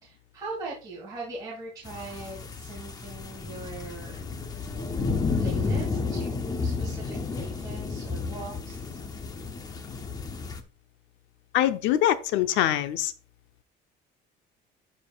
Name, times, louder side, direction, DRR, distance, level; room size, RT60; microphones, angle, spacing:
voice 1, 0.0-4.2 4.5-4.9 5.4-9.0, right 3 dB, 20° right, 2.4 m, -41 dB
sound 1, 1.9-10.6, left 4 dB, 20° left, 0.7 m, -32 dB
voice 2, 11.5-13.1, left 12 dB, 85° left, 0.8 m, -23 dB
12.0 x 4.7 x 2.4 m
cardioid pair, 165°, 19 cm